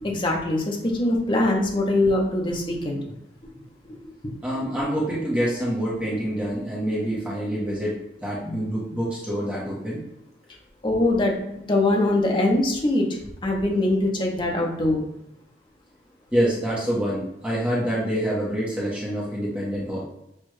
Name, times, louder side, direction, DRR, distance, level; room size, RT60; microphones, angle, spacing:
voice 1, 0.0-3.0 3.9-4.0 10.8-13.1 13.4-15.0, left 2 dB, 30° left, 0 dB, 0.8 m, -22 dB
voice 2, 4.4-10.0 16.3-20.1, equal, 5° right, -6 dB, 1.0 m, -26 dB
6.4 x 2.4 x 3.2 m, 0.85 s
head